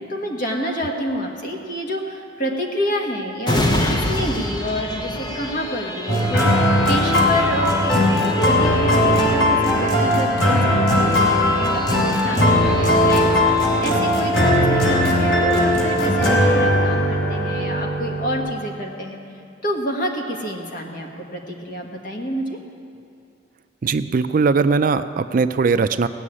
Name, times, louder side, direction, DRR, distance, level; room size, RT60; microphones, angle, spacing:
voice 1, 0.0-19.2 19.6-22.6, equal, 45° left, 1 dB, 1.6 m, -28 dB
sound 1, 3.4-16.8 17.2-17.3, left 1 dB, 20° left, 0.8 m, -29 dB
sound 2, 6.1-18.4, left 1 dB, 80° left, 3.1 m, -18 dB
voice 2, 23.8-26.1, right 4 dB, 45° right, 11 dB, 0.4 m, -19 dB
17.0 x 6.2 x 9.8 m, 2.5 s
head